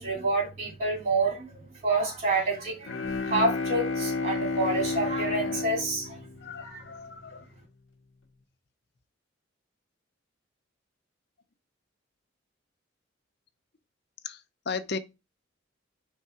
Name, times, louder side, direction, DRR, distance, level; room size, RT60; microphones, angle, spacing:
voice 1, 0.0-6.2 6.6-6.8, right 2 dB, 50° right, 2.2 m, -28 dB
Bowed string instrument, 2.8-7.1, left 3 dB, 85° left, 0.9 m, -31 dB
voice 2, 6.4-7.4 14.2-14.4 14.7-15.0, left 5 dB, 60° left, 0.7 m, -35 dB
4.7 x 3.6 x 5.6 m
head